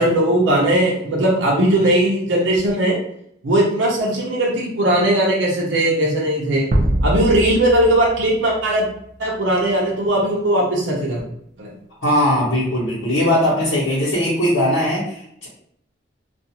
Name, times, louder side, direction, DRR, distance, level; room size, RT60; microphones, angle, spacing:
voice 1, 0.0-3.0 3.4-6.7 7.0-8.9 9.2-11.2 11.6-11.7, right 1 dB, 80° right, -3 dB, 0.7 m, -18 dB
sound 1, 6.7-9.1, right 1 dB, 40° right, 0.3 m, -22 dB
voice 2, 12.0-15.5, left 1 dB, 85° left, -10 dB, 1.0 m, -19 dB
2.4 x 2.4 x 2.9 m, 0.72 s
head